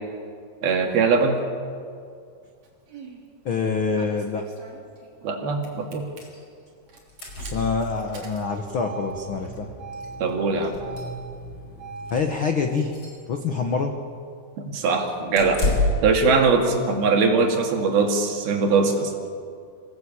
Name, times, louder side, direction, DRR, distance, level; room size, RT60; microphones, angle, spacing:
voice 1, 0.6-1.4 5.2-6.0 10.2-10.8 14.7-15.7 16.0-19.1, right 4 dB, 75° right, 2 dB, 4.2 m, -21 dB
Engine starting, 2.6-3.2 4.0-5.4 5.6-6.2 6.9-12.2, right 2 dB, 45° right, 4.4 m, -40 dB
voice 2, 3.4-4.5 7.4-9.7 12.1-12.9 13.3-14.0, left 4 dB, 75° left, 5 dB, 1.2 m, -26 dB
sound 1, 6.2-6.4 6.7-6.8 6.9-8.2 9.5-9.6 9.9-10.1 10.6-11.5 12.0-12.2 12.7-13.2 15.4-16.2, left 2 dB, 30° left, 5.8 m, -28 dB
26.5 x 17.0 x 8.7 m, 2.3 s
omnidirectional pair, 4.5 m